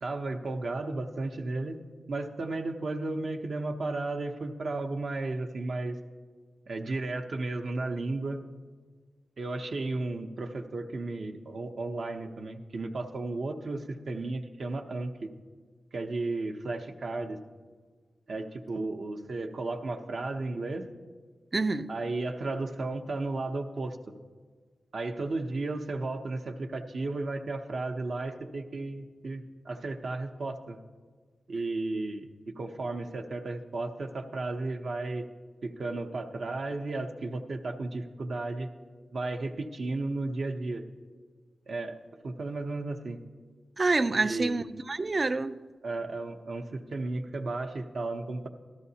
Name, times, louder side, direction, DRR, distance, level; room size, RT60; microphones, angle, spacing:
voice 1, 0.0-6.0 6.7-8.4 9.4-15.3 15.9-17.4 18.3-20.9 21.9-24.1 24.9-30.8 31.5-35.2 35.6-38.7 39.1-40.8 41.7-42.0 42.2-43.2 44.2-44.6 45.8-48.5, right 2 dB, 65° right, 0.7 m, -34 dB
voice 2, 21.5-21.9 43.8-45.6, right 3 dB, 40° right, 0.3 m, -27 dB
13.0 x 13.0 x 2.8 m
cardioid pair, 75°, 0 cm